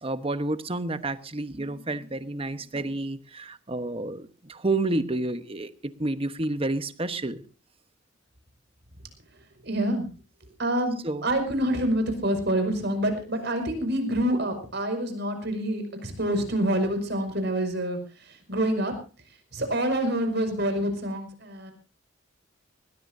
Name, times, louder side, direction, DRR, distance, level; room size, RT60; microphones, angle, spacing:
voice 1, 0.0-7.4 11.0-11.3, right 2 dB, 30° right, 1.1 m, -30 dB
voice 2, 9.6-10.1 10.6-18.0 18.5-18.9 19.5-21.7, right 1 dB, 60° right, 5.6 m, -27 dB
20.5 x 20.0 x 2.7 m
head